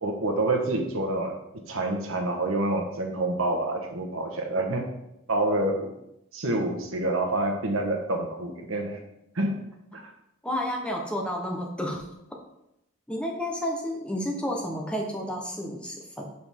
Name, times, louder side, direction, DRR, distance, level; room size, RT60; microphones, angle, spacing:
voice 1, 0.0-4.9 5.3-5.9 6.3-9.0 9.3-9.6 9.9-10.0, right 2 dB, 75° right, 3 dB, 1.1 m, -27 dB
voice 2, 10.4-12.0 13.1-16.3, equal, 5° left, 0 dB, 0.8 m, -31 dB
6.9 x 5.7 x 3.5 m, 0.84 s
head